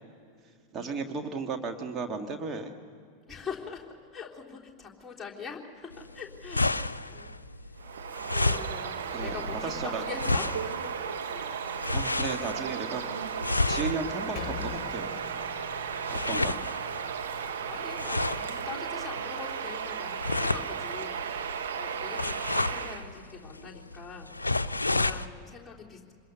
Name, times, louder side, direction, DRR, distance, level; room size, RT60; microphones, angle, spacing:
voice 1, 0.7-2.8 9.1-10.0 11.9-13.2 13.7-15.1 16.1-16.6, right 4 dB, 25° right, 4 dB, 1.8 m, -34 dB
voice 2, 3.3-7.3 8.3-10.8 11.3-11.5 16.1-16.7 17.4-26.1, left 5 dB, 5° left, -5 dB, 3.6 m, -43 dB
sound 1, 5.9-25.3, left 2 dB, 80° left, 0.5 m, -32 dB
Bird vocalization bird call bird song, 7.8-23.1, right 7 dB, 60° right, 1.4 m, -35 dB
Percussion, 14.4-19.1, left 10 dB, 35° left, 1.5 m, -45 dB
26.0 x 21.5 x 6.9 m, 2.2 s
figure-of-eight pair, 90°, 0 cm